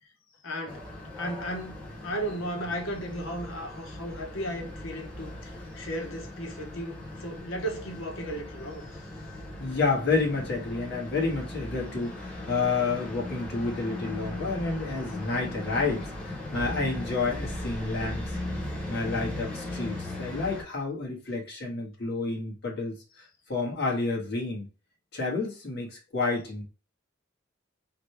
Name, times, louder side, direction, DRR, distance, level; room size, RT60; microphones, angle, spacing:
voice 1, 0.4-0.9 1.2-8.9, equal, 85° left, 1.2 m, -35 dB
sound 1, 0.7-20.6, left 1 dB, 5° left, 1.2 m, -38 dB
voice 2, 9.6-18.3 18.9-24.7 25.1-26.6, left 3 dB, 55° left, 1.6 m, -30 dB
3.8 x 3.3 x 3.3 m
head